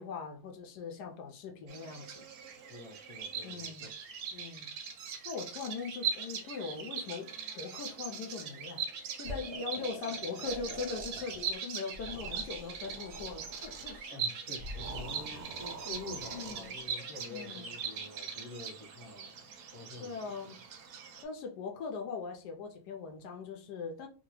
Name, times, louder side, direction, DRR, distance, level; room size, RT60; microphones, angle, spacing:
voice 1, 0.0-2.3 3.4-3.9 4.3-4.7 5.2-7.3 7.5-8.8 9.1-14.0 15.3-15.4 16.3-16.7 17.3-17.7 20.0-20.6 21.2-24.1, left 5 dB, 80° left, 1.2 m, -41 dB
Bird vocalization bird call bird song, 1.7-21.2, right 6 dB, 80° right, 1.2 m, -41 dB
voice 2, 2.7-3.9 14.1-19.5 19.7-20.5, left 3 dB, 30° left, 1.1 m, -47 dB
sound 1, 9.2-11.5 11.9-14.0 14.5-16.8, right 1 dB, 50° right, 0.8 m, -46 dB
3.8 x 2.2 x 3.0 m
omnidirectional pair, 1.7 m